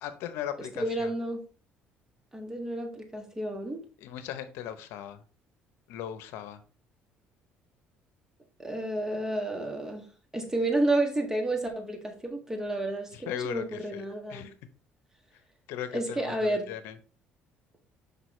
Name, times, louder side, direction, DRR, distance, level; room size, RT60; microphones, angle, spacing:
voice 1, 0.0-1.1 4.0-5.2 5.9-6.6 13.1-14.0 14.3-14.5 15.7-17.0, left 10 dB, 85° left, 11 dB, 0.7 m, -38 dB
voice 2, 0.7-1.4 2.3-3.8 8.6-10.0 10.3-14.5 15.9-16.7, right 1 dB, 15° right, 3 dB, 1.7 m, -30 dB
6.0 x 5.3 x 3.2 m, 0.36 s
cardioid pair, 105°, 4 cm